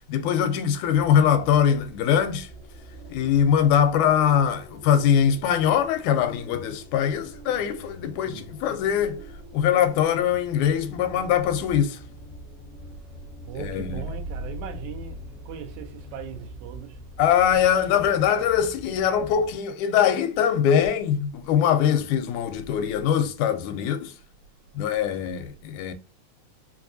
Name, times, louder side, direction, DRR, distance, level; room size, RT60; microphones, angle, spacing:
voice 1, 0.1-2.5 3.1-9.2 9.5-12.0 13.6-14.0 17.2-24.1 24.7-25.9, left 9 dB, 85° left, 2.0 m, -22 dB
sound 1, 0.8-19.6, equal, 30° left, 0.5 m, -44 dB
voice 2, 13.5-17.0 17.8-18.1 24.9-25.3, right 5 dB, 85° right, 2.1 m, -37 dB
5.1 x 2.5 x 2.6 m
omnidirectional pair, 3.3 m